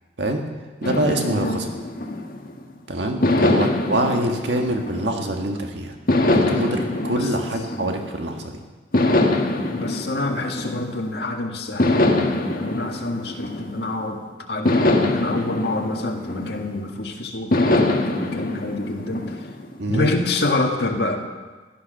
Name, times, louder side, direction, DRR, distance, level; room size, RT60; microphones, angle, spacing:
sound 1, 0.8-2.6 3.2-5.5 6.1-8.3 8.9-11.2 11.8-14.1 14.7-16.9 17.5-19.8, left 2 dB, 50° left, 1.6 m, -23 dB
voice 1, 0.8-1.7 2.9-6.0 6.3-8.6 19.8-20.1, right 1 dB, 80° right, 3 dB, 1.7 m, -25 dB
voice 2, 9.7-14.2 14.5-19.5 19.9-21.2, left 2 dB, 65° left, 2 dB, 1.9 m, -27 dB
16.0 x 12.0 x 6.5 m, 1.3 s
head